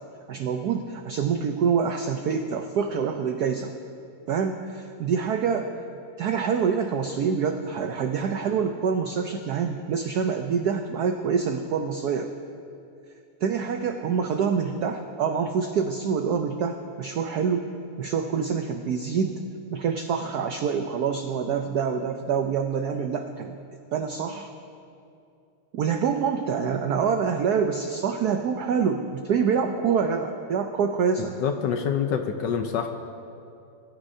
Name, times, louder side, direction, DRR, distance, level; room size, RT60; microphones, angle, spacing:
voice 1, 0.3-3.7 4.3-5.7 6.2-12.3 13.4-17.7 18.0-19.3 19.7-23.6 23.9-24.5 25.7-31.3, right 6 dB, 80° right, 6 dB, 0.8 m, -26 dB
voice 2, 31.4-32.9, left 7 dB, 70° left, 6 dB, 1.1 m, -26 dB
21.0 x 13.0 x 2.7 m, 2.5 s
omnidirectional pair, 2.4 m